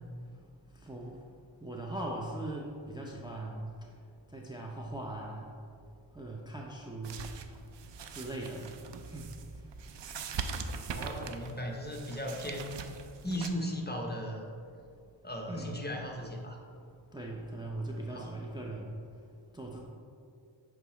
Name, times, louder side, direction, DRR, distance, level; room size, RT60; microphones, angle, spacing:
voice 1, 0.8-1.1 1.6-3.7 4.3-5.5 6.2-7.2 8.1-8.7 9.1-9.3 15.5-15.8 17.1-19.0 19.5-19.8, right 1 dB, 10° right, -2 dB, 0.6 m, -39 dB
sound 1, 7.0-13.5, right 5 dB, 60° right, 0.5 m, -41 dB
voice 2, 10.9-12.8 13.2-14.5 15.2-16.6 18.1-18.4, equal, 20° left, 0 dB, 0.8 m, -37 dB
6.8 x 4.7 x 3.1 m, 2.4 s
wide cardioid pair, 50°, 48 cm